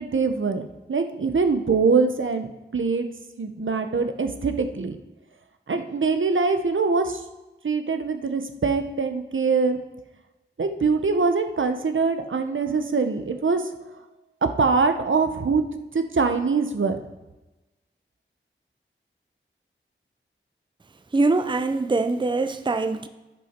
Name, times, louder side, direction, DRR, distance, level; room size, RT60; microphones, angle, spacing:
voice 1, 0.0-3.1 3.4-5.0 5.7-7.2 7.6-9.8 10.6-13.7 14.6-15.6 15.9-17.0, right 4 dB, 70° right, 0.8 m, -23 dB
voice 2, 21.1-23.1, right 3 dB, 20° right, 0.5 m, -23 dB
11.0 x 6.4 x 4.4 m
wide cardioid pair, 50°, 21 cm